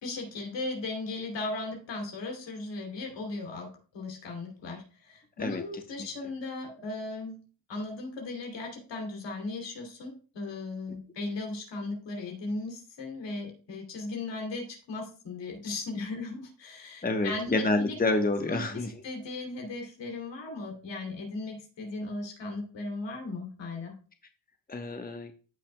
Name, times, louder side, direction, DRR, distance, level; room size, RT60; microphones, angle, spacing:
voice 1, 0.0-7.4 7.7-17.9 18.5-18.6 19.0-24.0, left 3 dB, 75° left, 1 dB, 3.1 m, -37 dB
voice 2, 17.0-19.0 24.7-25.3, left 2 dB, 20° left, 5 dB, 1.2 m, -28 dB
15.0 x 5.7 x 2.3 m, 0.38 s
supercardioid pair, 60°, 44 cm